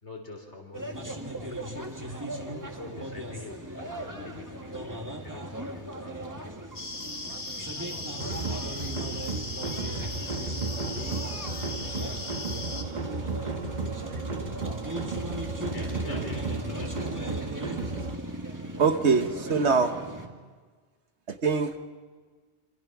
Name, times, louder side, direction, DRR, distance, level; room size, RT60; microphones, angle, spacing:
voice 1, 0.0-1.6 2.5-6.4 7.6-7.7 15.7-17.2, left 2 dB, 75° left, 2 dB, 4.3 m, -45 dB
sound 1, 0.7-20.3, right 1 dB, 15° right, 1.9 m, -38 dB
sound 2, 6.7-12.8, left 2 dB, 45° left, 1.9 m, -38 dB
sound 3, 8.2-18.2, right 3 dB, 40° right, 1.2 m, -34 dB
voice 2, 18.8-19.9 21.3-21.9, right 5 dB, 75° right, 8 dB, 1.5 m, -24 dB
27.0 x 26.0 x 6.0 m, 1.5 s
omnidirectional pair, 1.2 m